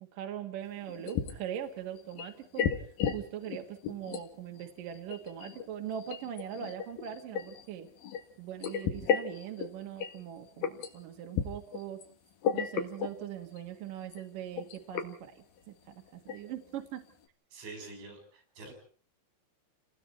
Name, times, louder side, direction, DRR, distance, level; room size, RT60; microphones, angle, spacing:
voice 1, 0.0-2.7 3.1-7.9 8.4-12.0 12.5-17.0, right 10 dB, 55° right, 4 dB, 3.1 m, -41 dB
sound 1, 0.8-1.5 1.9-3.2 3.4-4.2 4.5-8.2 8.6-10.2 10.6-10.9 11.3-12.1 12.4-13.2 13.6-13.7 14.0-14.2 14.6-15.1 15.6-15.7 16.1-16.4 16.7-16.8, left 7 dB, 60° left, 3.1 m, -33 dB
voice 2, 17.5-18.7, right 3 dB, 80° right, 5 dB, 8.6 m, -46 dB
29.5 x 20.0 x 4.4 m, 0.44 s
omnidirectional pair, 5.2 m